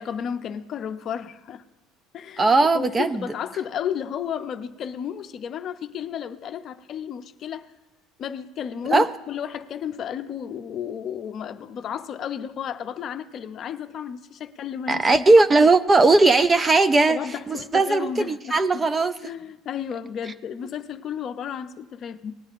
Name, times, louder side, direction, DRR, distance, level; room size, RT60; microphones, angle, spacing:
voice 1, 0.0-1.6 2.1-7.7 8.2-15.2 17.1-18.8 19.2-22.3, left 8 dB, 35° left, 0.6 m, -33 dB
voice 2, 2.4-3.3 8.9-9.1 14.9-17.2 17.5-19.1, right 3 dB, 15° right, 0.3 m, -18 dB
19.0 x 10.5 x 2.5 m
cardioid pair, 155°, 0 cm